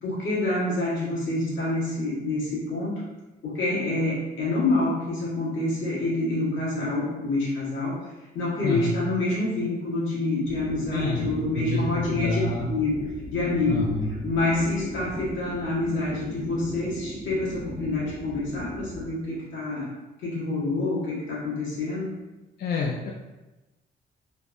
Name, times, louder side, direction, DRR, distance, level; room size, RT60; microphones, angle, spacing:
voice 1, 0.0-3.0 3.4-8.0 8.3-12.4 12.7-12.9 13.3-13.9 14.2-19.9 20.2-22.2, left 2 dB, 80° left, -8 dB, 1.3 m, -27 dB
voice 2, 8.6-9.0 10.9-12.7 13.7-14.1 22.6-23.1, left 3 dB, 50° left, -2 dB, 0.4 m, -28 dB
sound 1, 10.4-19.1, equal, 5° right, 0.7 m, -37 dB
3.4 x 2.1 x 2.4 m, 1.1 s
cardioid pair, 90°, 20 cm